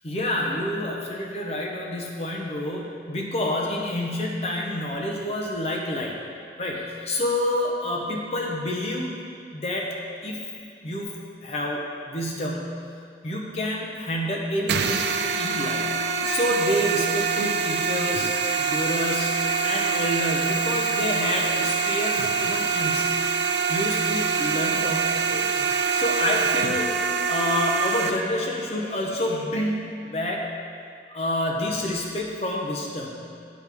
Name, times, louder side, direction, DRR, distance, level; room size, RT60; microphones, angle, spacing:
voice 1, 0.0-6.2 6.6-9.2 9.5-10.4 10.8-12.8 13.2-15.1 15.4-15.9 16.2-23.1 23.7-25.5 25.7-26.9 27.3-30.5 31.1-33.5, left 1 dB, 35° left, -1 dB, 0.8 m, -28 dB
sound 1, 14.7-28.1, right 5 dB, 75° right, 0.4 m, -25 dB
7.9 x 3.5 x 5.8 m, 2.3 s
head